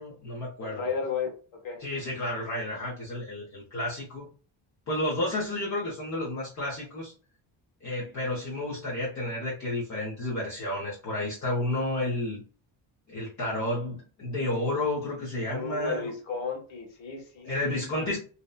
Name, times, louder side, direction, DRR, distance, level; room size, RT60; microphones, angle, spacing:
voice 1, 0.0-0.8 1.8-4.3 4.9-7.1 7.8-12.4 13.1-16.1 17.4-18.2, left 1 dB, 40° left, -4 dB, 0.8 m, -31 dB
voice 2, 0.6-1.8 15.5-18.2, left 5 dB, 80° left, 2 dB, 1.1 m, -34 dB
2.7 x 2.1 x 2.3 m, 0.38 s
cardioid pair, 150°, 47 cm